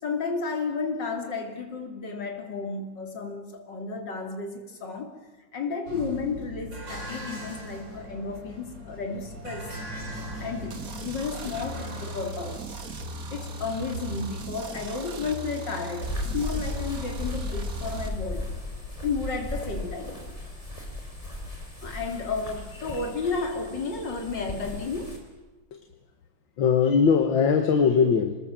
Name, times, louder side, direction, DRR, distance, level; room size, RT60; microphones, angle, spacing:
voice 1, 0.0-5.2 5.5-9.7 10.4-12.6 13.3-18.5 19.0-20.3 21.8-25.2, left 4 dB, 65° left, 4 dB, 3.5 m, -32 dB
sound 1, 5.9-14.2, right 1 dB, 65° right, 5.2 m, -40 dB
sound 2, 10.7-18.1, right 1 dB, 50° right, 2.2 m, -38 dB
sound 3, 16.0-25.2, left 2 dB, 15° left, 4.3 m, -36 dB
voice 2, 26.6-28.4, left 6 dB, 80° left, 6 dB, 2.1 m, -21 dB
26.5 x 20.0 x 7.5 m, 1.2 s
omnidirectional pair, 2.1 m